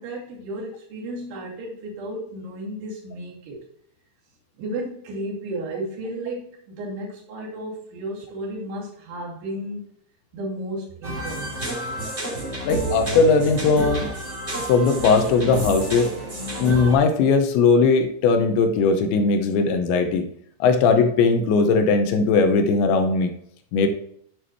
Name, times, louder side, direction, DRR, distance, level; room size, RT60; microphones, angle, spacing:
voice 1, 0.0-3.6 4.6-9.9 10.3-11.7, right 1 dB, 85° right, -4 dB, 4.9 m, -33 dB
sound 1, 11.0-17.0, right 2 dB, 15° right, 3.6 m, -29 dB
voice 2, 12.6-14.1 14.6-16.1 16.6-20.2 20.6-23.3 23.7-23.9, left 4 dB, 80° left, 6 dB, 3.1 m, -19 dB
10.0 x 7.4 x 3.1 m, 0.66 s
omnidirectional pair, 5.2 m